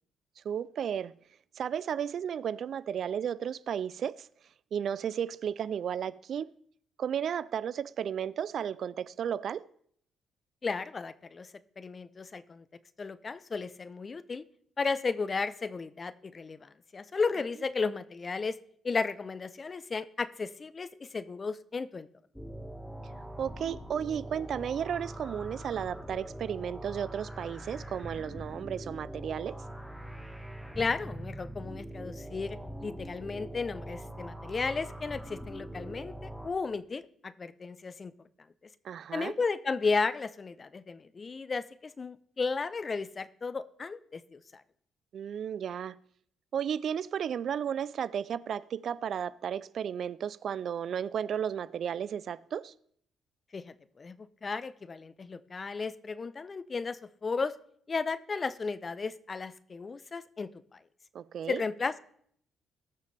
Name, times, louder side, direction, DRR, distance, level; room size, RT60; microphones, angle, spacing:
voice 1, 0.4-1.2 1.6-4.3 4.7-6.5 7.0-9.7 23.4-29.6 38.8-39.3 45.1-46.0 46.5-52.7 61.1-61.6, right 8 dB, 60° right, 0.3 m, -34 dB
voice 2, 10.6-11.5 11.8-12.6 13.0-14.4 14.8-18.6 18.8-22.1 30.8-38.1 39.1-44.4 53.5-54.2 54.4-57.5 57.9-60.5 61.5-62.0, left 4 dB, 35° left, 0.6 m, -34 dB
sound 1, 22.3-36.5, right 1 dB, ahead, 1.2 m, -43 dB
19.5 x 6.5 x 3.3 m
cardioid pair, 90°, 0 cm